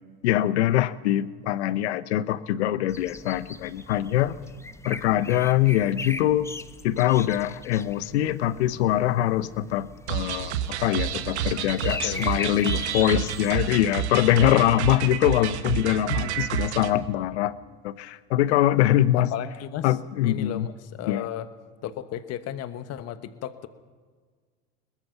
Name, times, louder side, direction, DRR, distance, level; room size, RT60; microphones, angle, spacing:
voice 1, 0.2-4.4 4.8-6.5 6.8-10.5 10.8-17.6 17.8-19.3 19.8-20.7 21.1-21.3, left 13 dB, 80° left, 16 dB, 0.9 m, -23 dB
sound 1, 2.9-14.0, left 2 dB, 10° left, 1.1 m, -40 dB
sound 2, 10.1-16.9, right 10 dB, 90° right, 1.3 m, -29 dB
voice 2, 11.8-12.3 13.0-13.2 13.5-13.7 16.1-16.5 19.1-19.9 20.2-21.5 21.8-23.7, left 11 dB, 50° left, 11 dB, 1.3 m, -34 dB
22.0 x 20.5 x 5.9 m, 1.5 s
hypercardioid pair, 85°, 33 cm